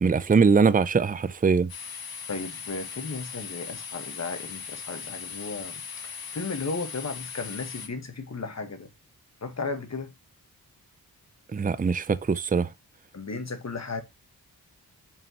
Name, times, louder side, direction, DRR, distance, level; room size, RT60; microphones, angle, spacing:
voice 1, 0.0-1.7 11.5-12.7, right 5 dB, 25° right, 0.5 m, -22 dB
sound 1, 1.7-7.9, left 6 dB, 75° left, 2.1 m, -39 dB
voice 2, 2.3-8.9 9.4-10.1 13.1-14.0, left 4 dB, 45° left, 1.6 m, -35 dB
7.1 x 5.6 x 3.0 m
wide cardioid pair, 105°, 37 cm